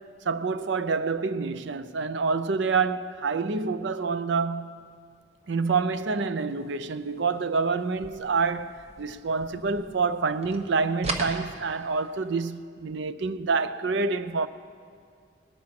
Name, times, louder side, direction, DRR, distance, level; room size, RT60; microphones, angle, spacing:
voice 1, 0.3-4.7 5.5-14.5, right 4 dB, 60° right, 0.5 m, -27 dB
sound 1, 7.9-10.2 10.4-12.2, right 2 dB, 30° right, 1.0 m, -37 dB
19.5 x 8.7 x 5.9 m
head